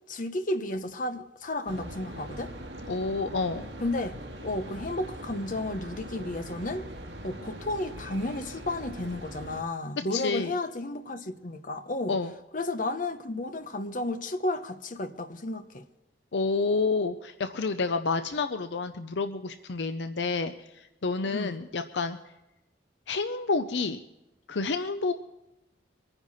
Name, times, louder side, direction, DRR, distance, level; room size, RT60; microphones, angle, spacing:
voice 1, 0.1-2.5 3.8-4.2 4.4-6.9 7.2-12.2 12.5-15.9 21.3-21.6, left 2 dB, 45° left, 1.0 m, -32 dB
sound 1, 1.7-9.6, right 1 dB, 70° right, 2.0 m, -42 dB
voice 2, 2.9-3.7 10.1-10.5 12.1-12.3 16.3-22.2 23.1-24.0 24.5-25.1, left 4 dB, 70° left, 0.6 m, -29 dB
24.0 x 9.9 x 4.2 m
head